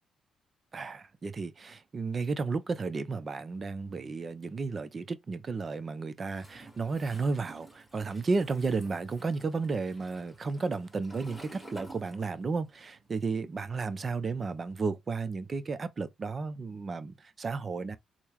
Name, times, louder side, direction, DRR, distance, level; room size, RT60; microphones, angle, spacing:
voice 1, 0.7-18.0, right 4 dB, 35° right, 0.6 m, -33 dB
Toilet flush, 6.3-12.7 13.0-14.6, right 1 dB, 5° left, 1.5 m, -52 dB
3.8 x 2.1 x 3.0 m
cardioid pair, 90°, 0 cm